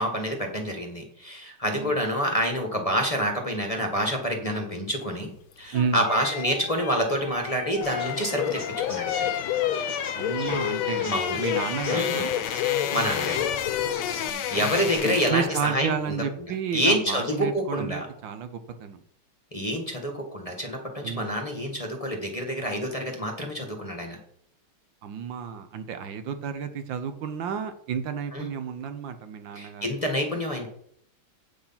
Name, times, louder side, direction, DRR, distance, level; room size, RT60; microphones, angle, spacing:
voice 1, 0.0-5.3 5.6-9.3 11.0-11.4 11.9-12.3 12.9-13.4 14.3-16.2 16.7-18.1 19.5-24.2 28.3-28.5 29.5-30.7, equal, 20° left, 2 dB, 1.5 m, -27 dB
voice 2, 1.7-2.0 5.7-6.0 10.1-12.3 14.2-14.7 15.0-19.0 21.0-21.3 25.0-29.9, right 7 dB, 70° right, 9 dB, 1.5 m, -32 dB
sound 1, 5.5-15.5 15.8-16.0, left 9 dB, 65° left, 1.2 m, -31 dB
Bird, 7.8-14.3, left 11 dB, 85° left, 1.4 m, -31 dB
Chirp tweet, 7.8-15.0, right 1 dB, 35° right, 3.2 m, -45 dB
8.7 x 6.5 x 5.7 m, 0.67 s
omnidirectional pair, 2.2 m